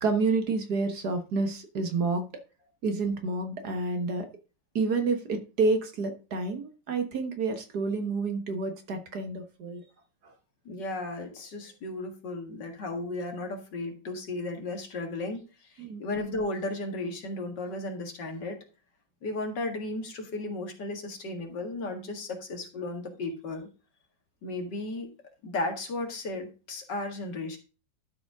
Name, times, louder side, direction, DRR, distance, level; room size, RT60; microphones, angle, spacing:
voice 1, 0.0-2.2 2.8-4.3 4.8-9.8 10.2-10.3 15.8-16.0, right 3 dB, 60° right, 6 dB, 1.8 m, -29 dB
voice 2, 10.7-18.6 19.2-23.7 24.4-25.1 25.4-27.6, left 2 dB, 65° left, 4 dB, 2.5 m, -35 dB
12.0 x 5.1 x 4.7 m, 0.33 s
omnidirectional pair, 2.0 m